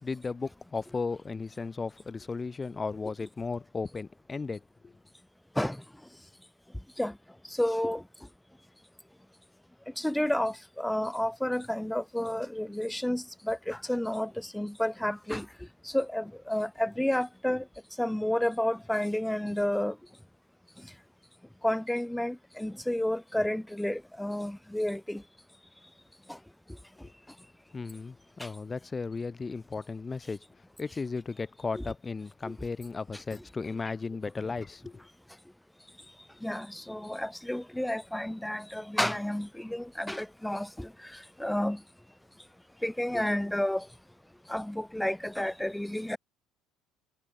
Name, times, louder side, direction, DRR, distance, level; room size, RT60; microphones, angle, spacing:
voice 1, 0.0-4.9 27.7-30.4 30.8-35.0, left 4 dB, 25° left, 3.6 m, -35 dB
voice 2, 7.5-8.0 10.0-15.5 15.8-17.7 18.0-20.0 21.6-25.2 26.3-26.4 28.4-28.5 31.7-31.8 32.4-32.5 36.4-41.8 42.8-43.9 44.5-46.2, left 1 dB, 5° left, 2.5 m, -31 dB
hypercardioid pair, 70°, 0 cm